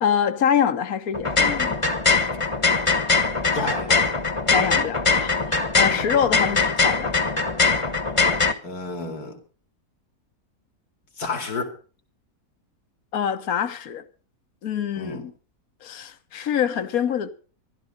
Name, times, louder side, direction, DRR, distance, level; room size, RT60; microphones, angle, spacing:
voice 1, 0.0-1.8 4.5-7.1 13.1-14.0 14.6-15.3 15.8-17.3, left 8 dB, 70° left, 1.5 m, -25 dB
sound 1, 1.1-8.5, left 4 dB, 20° left, 1.2 m, -21 dB
voice 2, 3.5-4.1 5.9-6.0 8.6-9.4 11.2-11.7 15.0-15.3, left 3 dB, 85° left, 3.1 m, -30 dB
15.0 x 12.0 x 5.1 m
omnidirectional pair, 1.6 m